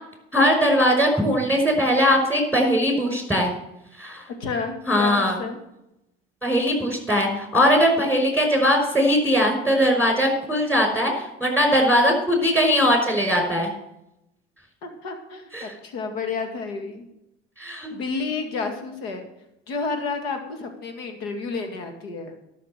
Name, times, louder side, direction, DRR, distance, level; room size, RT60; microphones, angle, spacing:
voice 1, 0.3-3.5 4.0-4.2 4.9-5.4 6.4-13.7 15.5-15.7 17.6-17.9, equal, 5° left, 3 dB, 5.7 m, -20 dB
voice 2, 4.4-5.6 14.8-17.1 17.9-19.2 19.7-22.3, left 4 dB, 85° left, 6 dB, 2.2 m, -30 dB
12.5 x 6.5 x 8.1 m, 0.83 s
supercardioid pair, 80°, 29 cm